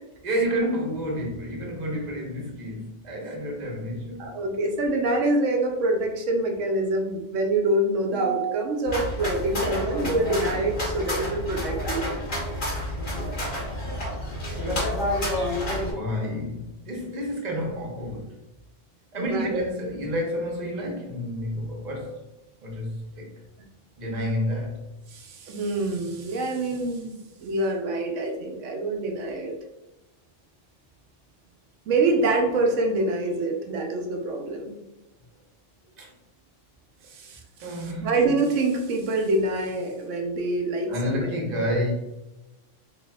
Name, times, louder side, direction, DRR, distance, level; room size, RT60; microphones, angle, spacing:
voice 1, 0.2-4.3 14.5-15.0 15.4-18.4 19.1-22.2 22.6-23.3 24.0-24.8 36.0-36.1 37.0-37.1 37.6-38.1 40.9-41.9, equal, 40° right, 1.0 m, -30 dB
voice 2, 4.2-12.0 19.3-19.6 25.1-29.5 31.9-34.8 37.1-37.7 38.0-41.4, right 2 dB, 85° right, 1.1 m, -26 dB
sound 1, 8.9-15.9, left 1 dB, 85° left, 1.8 m, -29 dB
4.1 x 3.4 x 2.3 m
omnidirectional pair, 1.2 m